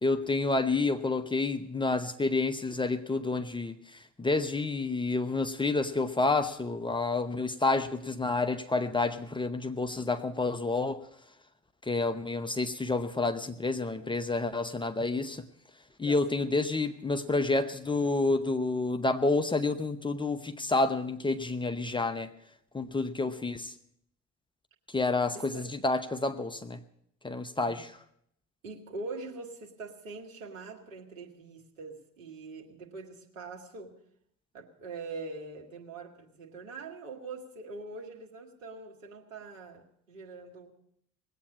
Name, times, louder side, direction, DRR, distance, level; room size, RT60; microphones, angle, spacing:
voice 1, 0.0-11.0 11.9-15.4 16.0-22.3 22.7-23.7 24.9-26.8 27.2-27.9, left 3 dB, 10° left, 8 dB, 0.9 m, -29 dB
voice 2, 16.0-16.6 25.3-25.7 28.6-33.9 34.5-40.7, right 3 dB, 75° right, 0 dB, 2.0 m, -43 dB
19.5 x 8.5 x 8.4 m, 0.72 s
figure-of-eight pair, 55°, 40 cm